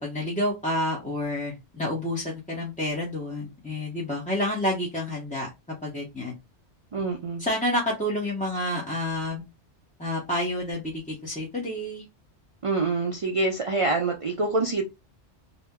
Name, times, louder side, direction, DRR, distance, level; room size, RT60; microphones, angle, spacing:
voice 1, 0.0-5.5 5.8-6.3 7.4-9.4 10.0-12.0, left 1 dB, 10° left, 0.6 m, -29 dB
voice 2, 6.9-7.4 12.6-14.8, right 3 dB, 45° right, 0.4 m, -26 dB
2.8 x 2.0 x 3.5 m
omnidirectional pair, 1.2 m